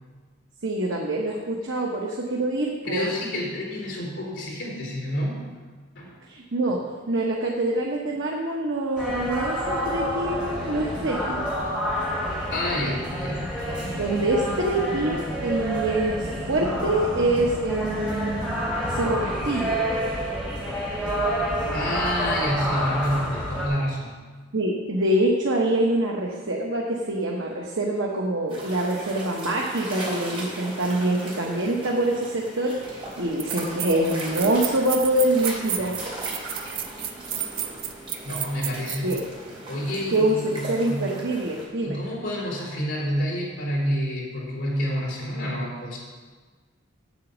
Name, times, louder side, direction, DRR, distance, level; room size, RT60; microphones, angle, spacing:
voice 1, 0.6-3.1 6.3-11.5 13.6-19.8 24.5-35.9 39.0-39.2 40.1-42.0, right 1 dB, 80° right, -2 dB, 1.1 m, -25 dB
voice 2, 2.9-5.5 5.9-6.2 12.5-13.5 21.7-24.1 38.2-39.2 39.7-41.2 41.8-46.0, equal, 65° left, -4 dB, 3.6 m, -28 dB
sound 1, 9.0-23.7, equal, 5° right, 2.2 m, -28 dB
sound 2, 28.5-41.7, right 1 dB, 25° right, 2.7 m, -38 dB
sound 3, 32.8-32.9 33.4-39.2, right 9 dB, 45° right, 0.7 m, -32 dB
8.3 x 8.2 x 6.2 m, 1.5 s
head